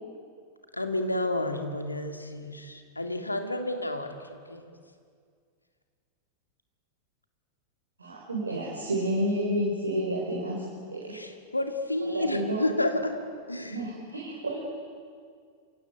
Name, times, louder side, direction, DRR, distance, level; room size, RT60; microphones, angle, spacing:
voice 1, 0.7-4.6 11.1-13.2 13.5-13.8, left 1 dB, 85° left, 6 dB, 2.1 m, -30 dB
voice 2, 8.0-11.1 12.0-12.6 13.6-14.7, right 1 dB, 75° right, -2 dB, 4.0 m, -30 dB
26.5 x 16.5 x 9.1 m, 2.1 s
figure-of-eight pair, 90°, 0 cm